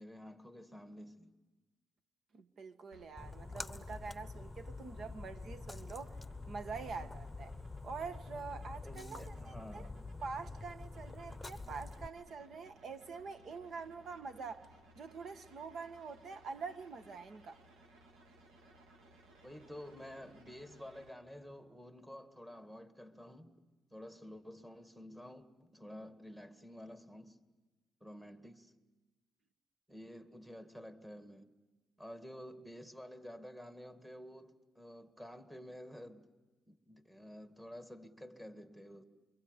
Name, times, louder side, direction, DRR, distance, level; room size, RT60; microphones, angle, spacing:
voice 1, 0.0-1.3 8.8-10.0 19.4-23.6 23.9-27.4 28.0-28.7 29.9-31.5 32.0-36.3 36.7-39.0, equal, 10° right, 2.0 m, -51 dB
voice 2, 2.3-6.2 6.5-7.6 7.8-9.9 10.2-14.7 14.9-17.6, right 4 dB, 60° right, 1.5 m, -45 dB
sound 1, 2.9-21.1, right 1 dB, 80° right, 2.3 m, -63 dB
Splash splatter, 3.2-12.1, left 3 dB, 10° left, 1.0 m, -47 dB
29.0 x 23.0 x 8.2 m
cardioid pair, 90°, 0 cm